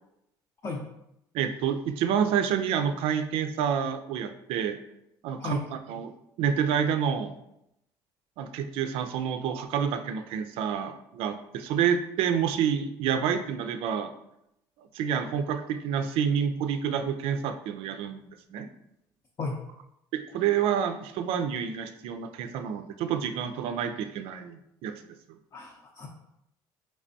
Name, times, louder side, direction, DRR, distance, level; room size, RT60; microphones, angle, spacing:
voice 1, 1.3-4.8 5.2-6.1 6.4-7.4 8.4-14.1 14.9-18.2 18.5-18.7 20.1-24.9, right 8 dB, 80° right, 8 dB, 0.4 m, -28 dB
voice 2, 25.5-26.1, left 3 dB, 40° left, -1 dB, 0.6 m, -34 dB
3.3 x 3.2 x 2.6 m, 0.81 s
supercardioid pair, 85°, 10 cm